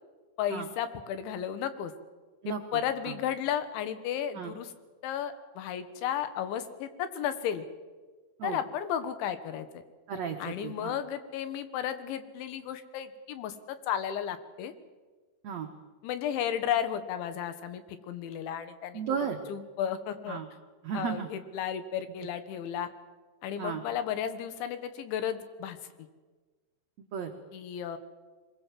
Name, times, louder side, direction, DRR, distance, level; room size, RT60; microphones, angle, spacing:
voice 1, 0.4-1.9 2.5-4.7 5.0-7.7 8.4-9.8 10.4-14.7 16.0-19.0 19.5-20.4 20.9-22.9 23.4-26.1 27.5-28.0, left 9 dB, 85° left, 11 dB, 3.7 m, -33 dB
voice 2, 10.1-11.0 15.4-15.7 18.9-19.4 20.3-20.5 20.8-21.3 23.6-23.8 27.0-27.3, right 7 dB, 85° right, 3 dB, 1.5 m, -34 dB
23.5 x 21.5 x 7.6 m, 1.4 s
omnidirectional pair, 5.2 m